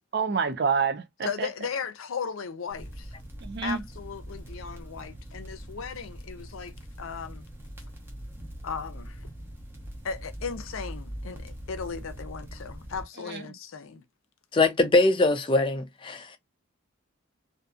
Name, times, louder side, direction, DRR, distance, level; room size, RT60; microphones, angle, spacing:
voice 1, 0.1-1.5 3.4-3.8 13.2-13.5, right 5 dB, 50° right, 0.5 m, -28 dB
voice 2, 1.2-3.1 3.6-7.4 8.6-9.2 10.0-14.0, left 6 dB, 75° left, 0.5 m, -36 dB
sound 1, 2.7-13.1, equal, 10° right, 0.7 m, -42 dB
voice 3, 14.5-16.4, left 2 dB, 25° left, 0.4 m, -22 dB
2.6 x 2.5 x 2.3 m
head